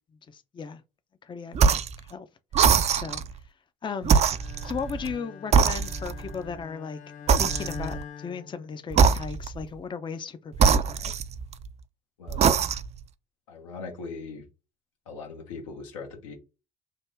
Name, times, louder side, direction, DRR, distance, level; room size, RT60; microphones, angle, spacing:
voice 1, 0.3-0.8 1.2-2.3 2.9-3.2 3.8-4.2 4.6-7.0 7.4-11.1, left 6 dB, 30° left, 0.5 m, -36 dB
sound 1, 1.5-2.0 2.5-3.3 4.0-5.2 5.5-6.3 7.3-8.0 8.9-9.6 10.5-11.7 12.3-13.0, right 6 dB, 45° right, 0.4 m, -22 dB
Bowed string instrument, 4.3-9.2, left 8 dB, 50° left, 1.2 m, -43 dB
voice 2, 12.2-12.6 13.5-14.4 15.1-16.4, left 4 dB, 85° left, 1.0 m, -40 dB
3.4 x 2.1 x 3.4 m
hypercardioid pair, 45°, 16 cm